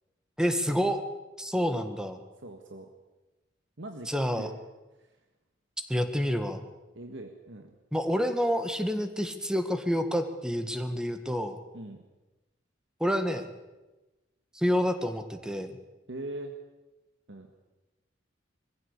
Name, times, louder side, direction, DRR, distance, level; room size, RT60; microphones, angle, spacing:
voice 1, 0.4-1.0 1.4-2.2 4.1-4.5 5.9-6.7 7.9-11.6 13.0-13.5 14.5-15.8, equal, 5° right, 8 dB, 1.6 m, -28 dB
voice 2, 2.4-2.9 3.8-4.1 4.4-4.6 5.0-5.1 6.9-7.7 11.7-12.0 16.1-16.5 17.3-17.5, right 1 dB, 70° right, 4 dB, 1.7 m, -41 dB
22.0 x 15.0 x 8.3 m, 1.1 s
head